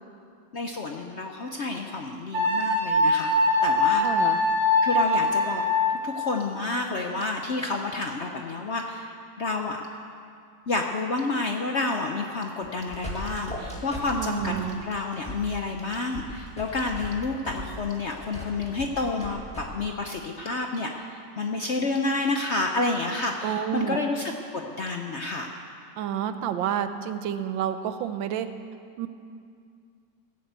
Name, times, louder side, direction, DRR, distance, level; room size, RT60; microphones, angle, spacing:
voice 1, 0.5-3.3 3.6-4.1 4.8-5.6 6.0-9.8 10.7-25.5, left 3 dB, 55° left, 3 dB, 0.7 m, -29 dB
Wind instrument woodwind instrument, 2.3-6.1, left 2 dB, 60° right, 2.6 m, -22 dB
voice 2, 3.9-4.4 14.2-14.8 23.4-24.0 26.0-28.5 29.0-29.1, right 9 dB, 85° right, 10 dB, 1.5 m, -29 dB
sound 1, 12.6-19.6, equal, 5° left, 1.8 m, -38 dB
16.0 x 7.7 x 8.1 m, 2.4 s
omnidirectional pair, 2.0 m